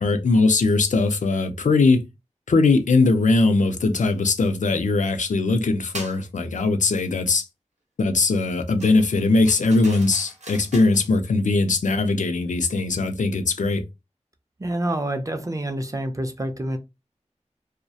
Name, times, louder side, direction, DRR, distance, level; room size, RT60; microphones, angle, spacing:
voice 1, 0.0-2.0 2.5-7.5 8.0-13.8, left 3 dB, 85° left, 0.4 m, -20 dB
sound 1, 5.9-6.2 8.8-11.1, right 1 dB, 65° right, 0.7 m, -40 dB
voice 2, 14.6-16.8, right 1 dB, 25° right, 0.4 m, -27 dB
2.3 x 2.0 x 2.6 m
wide cardioid pair, 65°, 13 cm